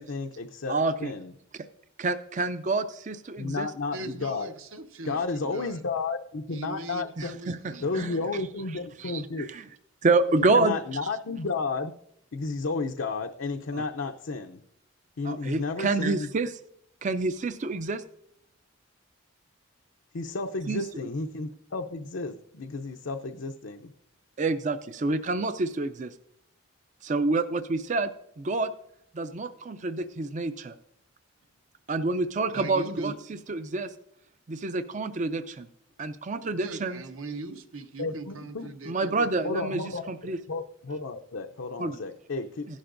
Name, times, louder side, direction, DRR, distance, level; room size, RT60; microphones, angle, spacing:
voice 1, 0.0-1.3 3.4-4.5 5.0-7.3 7.8-9.5 10.5-11.9 12.3-14.6 15.2-16.3 20.1-23.9 38.0-38.7 39.4-40.0 40.5-42.7, left 3 dB, 65° left, 4 dB, 0.6 m, -32 dB
voice 2, 0.7-1.1 2.0-3.7 7.2-8.2 9.0-9.6 10.0-10.7 13.7-13.8 15.2-16.6 17.0-18.0 20.7-20.8 24.4-26.1 27.0-28.1 28.4-28.7 29.1-30.8 31.9-33.1 33.5-33.9 34.5-35.7 36.0-37.0 38.9-40.4 41.8-41.9, right 3 dB, 35° right, 10 dB, 0.4 m, -28 dB
voice 3, 3.9-5.8 6.5-8.2 32.5-33.2 36.6-39.5, right 2 dB, 75° right, 7 dB, 1.1 m, -39 dB
16.0 x 11.5 x 2.6 m, 0.75 s
head